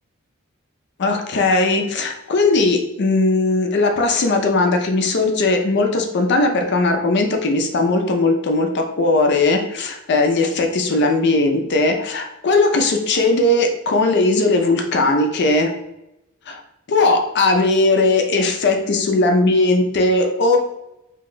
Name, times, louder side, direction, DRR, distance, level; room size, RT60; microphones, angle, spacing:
voice 1, 1.0-15.7 16.5-16.6 16.9-20.6, left 2 dB, 55° left, 4 dB, 0.5 m, -18 dB
2.7 x 2.2 x 3.8 m, 0.86 s
head